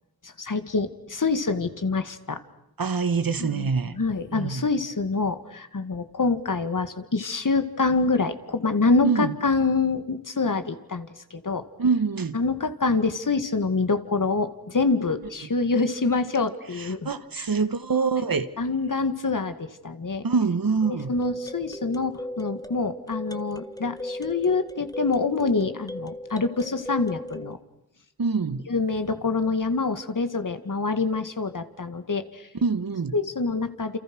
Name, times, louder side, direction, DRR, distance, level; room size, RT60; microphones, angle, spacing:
voice 1, 0.2-2.4 3.4-11.6 12.3-17.1 17.3-17.5 18.6-20.3 20.9-27.6 28.7-32.5 33.1-34.0, left 3 dB, 55° left, 10 dB, 2.1 m, -26 dB
voice 2, 2.8-4.0 4.3-4.6 9.0-9.3 11.8-12.4 16.8-18.5 20.2-21.1 28.2-28.6 32.6-33.1, right 5 dB, 65° right, 12 dB, 1.7 m, -25 dB
sound 1, 20.8-27.6, left 1 dB, 10° left, 1.5 m, -37 dB
28.5 x 27.5 x 6.2 m, 0.86 s
wide cardioid pair, 60°, 37 cm